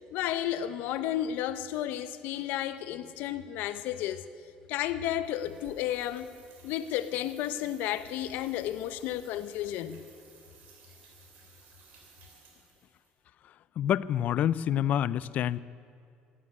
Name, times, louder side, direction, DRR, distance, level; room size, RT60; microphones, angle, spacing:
voice 1, 0.1-4.2 4.7-6.3 6.6-10.0, left 12 dB, 80° left, 0.8 m, -32 dB
sound 1, 5.2-13.1, right 5 dB, 65° right, 3.4 m, -58 dB
voice 2, 13.8-15.6, left 10 dB, 55° left, 0.4 m, -27 dB
15.0 x 9.8 x 9.8 m
cardioid pair, 115°, 3 cm